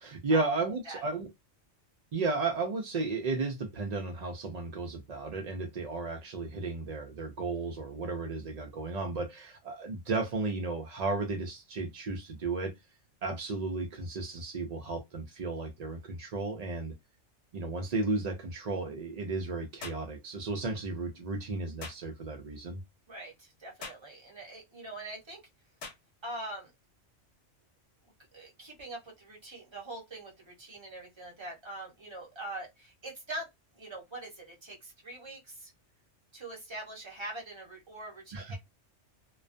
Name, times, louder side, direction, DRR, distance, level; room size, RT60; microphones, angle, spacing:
voice 1, 0.0-1.3 2.1-12.7 13.2-16.9 17.5-22.8 38.3-38.6, right 3 dB, 70° right, 0.4 m, -34 dB
sound 1, 19.8-20.1 21.8-22.0 23.8-24.1 25.8-26.0, left 4 dB, 65° left, 0.9 m, -43 dB
voice 2, 23.1-25.4 26.2-26.7 28.3-33.5 33.7-35.7 36.3-38.6, right 2 dB, 25° right, 0.8 m, -43 dB
2.3 x 2.1 x 2.5 m
omnidirectional pair, 1.2 m